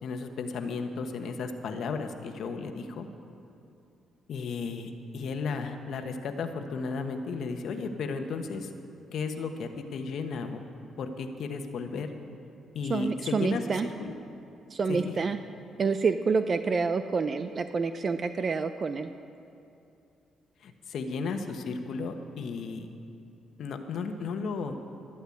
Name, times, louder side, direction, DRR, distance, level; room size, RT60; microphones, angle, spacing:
voice 1, 0.0-3.1 4.3-8.7 9.1-10.6 11.0-12.1 12.7-14.1 14.9-15.1 20.6-22.9 23.6-24.8, left 4 dB, 65° left, 6 dB, 1.2 m, -34 dB
voice 2, 12.9-13.9 14.7-15.4 15.8-19.1, right 4 dB, 40° right, 9 dB, 0.5 m, -28 dB
12.0 x 11.0 x 8.5 m, 2.7 s
cardioid pair, 90°, 0 cm